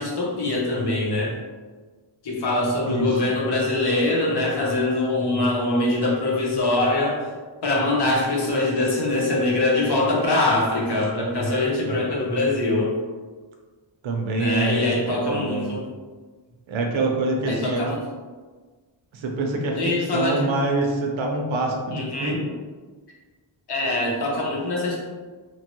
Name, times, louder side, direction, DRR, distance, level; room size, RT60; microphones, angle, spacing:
voice 1, 0.0-1.4 2.2-7.3 7.6-12.9 14.3-15.8 17.5-18.0 19.7-20.4 21.9-22.4 23.7-25.0, left 2 dB, 55° left, -3 dB, 0.8 m, -23 dB
voice 2, 2.8-3.3 11.8-12.1 14.0-15.7 16.7-17.9 19.1-22.4, right 2 dB, 80° right, 1 dB, 0.6 m, -26 dB
3.0 x 2.2 x 2.9 m, 1.4 s
wide cardioid pair, 175°, 47 cm